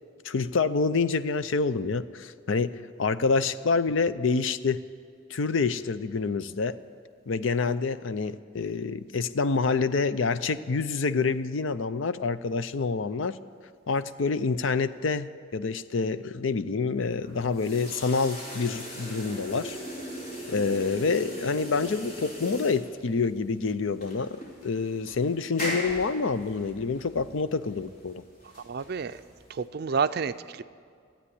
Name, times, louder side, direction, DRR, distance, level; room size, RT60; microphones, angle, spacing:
voice 1, 0.2-4.8 5.3-6.8 7.3-13.4 13.9-19.8 20.5-28.2, left 4 dB, 75° left, 13 dB, 0.5 m, -27 dB
sound 1, 17.2-29.7, equal, 40° left, 4.0 m, -39 dB
voice 2, 28.6-29.2 29.5-30.6, right 5 dB, 50° right, 13 dB, 0.4 m, -29 dB
15.5 x 8.9 x 9.9 m, 2.1 s
head